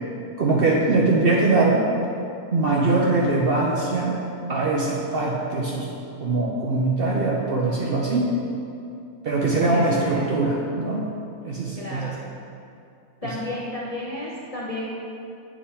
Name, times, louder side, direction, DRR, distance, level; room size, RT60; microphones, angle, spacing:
voice 1, 0.4-1.9 2.5-4.1 4.5-5.9 6.2-8.3 9.2-11.1 11.4-12.0, right 3 dB, 60° right, -3 dB, 0.6 m, -22 dB
voice 2, 9.5-10.3 11.7-12.1 13.2-14.9, left 2 dB, 50° left, -6 dB, 0.4 m, -33 dB
7.4 x 3.5 x 4.2 m, 2.6 s
omnidirectional pair, 1.5 m